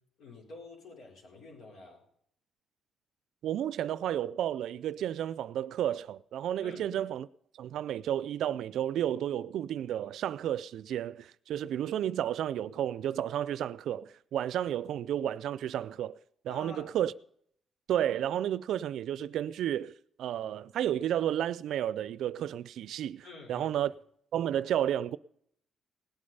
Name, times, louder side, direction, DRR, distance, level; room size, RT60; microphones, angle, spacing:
voice 1, 0.2-2.0 6.6-6.9 16.5-16.9 23.2-23.7, left 3 dB, 70° left, 4.5 m, -48 dB
voice 2, 3.4-7.3 7.6-16.2 16.4-17.1 17.9-19.9 20.2-23.9 24.3-25.2, right 11 dB, 75° right, 0.4 m, -32 dB
18.5 x 8.6 x 5.5 m
cardioid pair, 90°, 0 cm